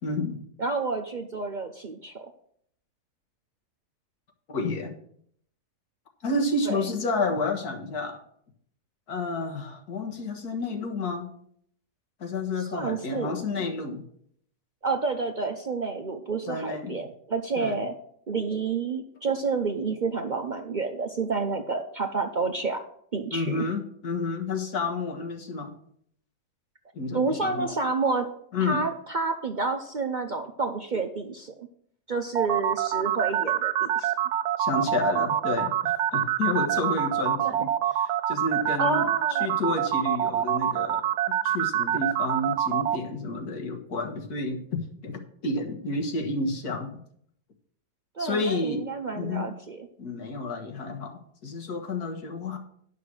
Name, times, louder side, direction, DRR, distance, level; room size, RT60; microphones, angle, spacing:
voice 1, 0.0-0.4 4.5-4.9 6.2-8.2 9.1-11.3 12.2-14.1 16.5-17.1 17.6-17.8 23.3-25.7 26.9-27.7 28.5-28.8 34.6-41.0 41.4-47.0 48.2-48.9 49.1-49.5 50.0-52.6, left 3 dB, 70° left, 2 dB, 2.0 m, -30 dB
voice 2, 0.6-2.3 6.7-6.8 12.6-13.4 14.8-17.9 18.3-22.8 23.1-23.7 27.1-28.3 28.6-31.7 32.1-34.1 37.4-37.7 38.8-39.6 48.2-49.8, right 4 dB, 55° right, 5 dB, 0.5 m, -29 dB
sound 1, 32.3-43.0, right 10 dB, 85° right, 1.2 m, -25 dB
11.0 x 5.8 x 6.2 m, 0.67 s
omnidirectional pair, 1.7 m